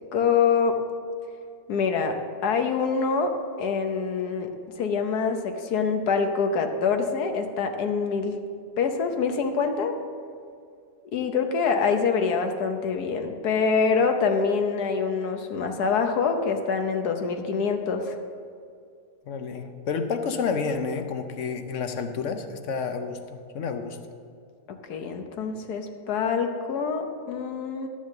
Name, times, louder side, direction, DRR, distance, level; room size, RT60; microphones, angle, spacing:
voice 1, 0.1-0.8 1.7-2.2 2.4-4.5 4.8-8.4 8.8-10.0 11.1-18.2 24.9-27.9, left 5 dB, 75° left, 5 dB, 1.4 m, -25 dB
voice 2, 19.3-23.2 23.5-24.0, left 5 dB, 60° left, 7 dB, 1.0 m, -29 dB
12.0 x 7.0 x 6.5 m, 2.3 s
omnidirectional pair, 1.7 m